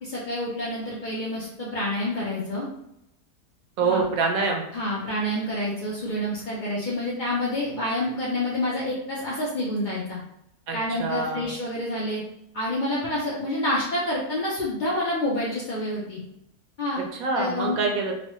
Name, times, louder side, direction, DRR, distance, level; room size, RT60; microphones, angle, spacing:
voice 1, 0.0-2.7 3.8-4.0 4.7-10.2 10.7-12.2 12.5-16.2 16.8-17.0 17.4-17.8, left 1 dB, 80° left, -6 dB, 0.4 m, -28 dB
voice 2, 3.8-4.6 10.7-11.5 17.2-18.1, right 4 dB, 75° right, 1 dB, 1.0 m, -25 dB
3.0 x 2.1 x 3.0 m, 0.80 s
omnidirectional pair, 1.6 m